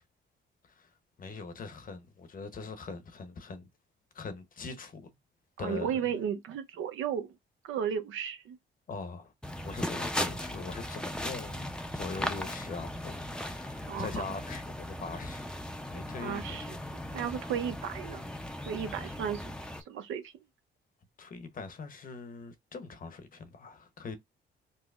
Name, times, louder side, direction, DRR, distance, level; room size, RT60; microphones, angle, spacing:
voice 1, 0.6-3.7 4.1-5.2 5.6-6.2 8.9-9.3 9.6-11.7 11.9-15.6 15.9-16.6 18.8-19.1 21.2-24.2, left 4 dB, 45° left, 0.8 m, -42 dB
voice 2, 5.6-7.4 7.6-8.6 13.9-14.2 16.2-16.8 17.1-18.3 18.7-19.4 19.9-20.3, right 8 dB, 80° right, 0.7 m, -34 dB
sound 1, 9.4-19.8, left 1 dB, 5° left, 0.5 m, -38 dB
5.3 x 2.0 x 2.3 m
cardioid pair, 90°, 20 cm